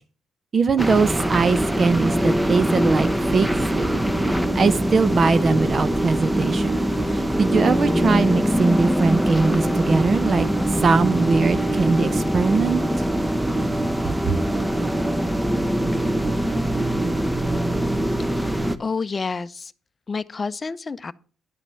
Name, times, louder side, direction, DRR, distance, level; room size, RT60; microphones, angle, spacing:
voice 1, 0.5-3.5 3.7-3.8 4.5-6.8 7.1-10.5 10.8-12.8 14.3-14.4, right 4 dB, 40° right, 0.7 m, -21 dB
sound 1, 0.8-18.8, right 1 dB, 10° right, 0.8 m, -22 dB
voice 2, 18.2-19.7 20.1-21.1, left 4 dB, 30° left, 0.6 m, -29 dB
11.0 x 5.9 x 5.7 m
cardioid pair, 90°, 0 cm